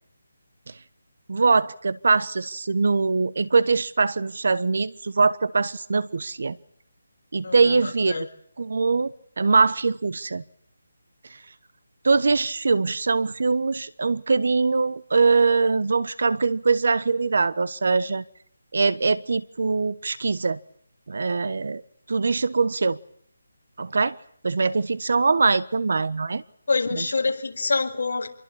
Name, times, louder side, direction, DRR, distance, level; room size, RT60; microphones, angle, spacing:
voice 1, 1.3-6.6 7.3-8.3 8.6-10.4 11.3-11.4 12.0-18.2 18.7-20.6 21.1-21.8 22.1-23.0 23.8-24.2 24.4-26.4 27.0-27.1, right 4 dB, 50° right, 19 dB, 1.1 m, -22 dB
voice 2, 7.4-8.3 26.7-28.3, left 4 dB, 50° left, 2 dB, 5.1 m, -26 dB
27.0 x 23.0 x 8.7 m, 0.65 s
hypercardioid pair, 175°, 0 cm